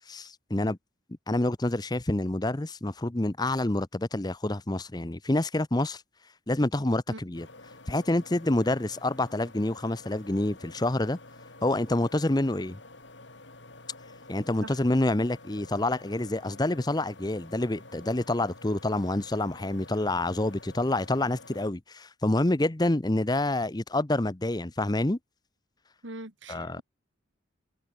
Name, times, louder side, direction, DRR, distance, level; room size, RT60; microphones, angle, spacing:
voice 1, 0.1-0.8 1.3-6.0 6.5-7.5 7.9-11.2 11.6-12.8 14.3-25.2 26.5-26.8, left 1 dB, 20° left, 0.8 m, -27 dB
sound 1, 7.3-21.7, left 2 dB, 65° left, 4.3 m, -50 dB
voice 2, 26.0-26.8, right 2 dB, 75° right, 3.1 m, -42 dB
head